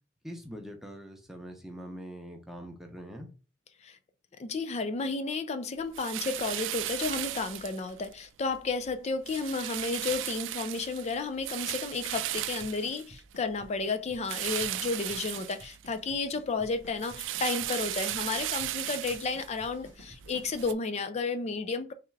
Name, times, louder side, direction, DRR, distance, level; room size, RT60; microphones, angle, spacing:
voice 1, 0.2-3.3, equal, ahead, 0.7 m, -43 dB
voice 2, 4.4-21.9, left 4 dB, 35° left, 0.4 m, -32 dB
sound 1, 5.9-8.1 8.5-8.9 9.3-13.5 14.2-16.1 16.5-20.7, right 13 dB, 75° right, 0.3 m, -36 dB
Drum kit / Snare drum / Bass drum, 12.6-20.6, right 1 dB, 75° left, 1.9 m, -51 dB
3.5 x 3.3 x 3.2 m
head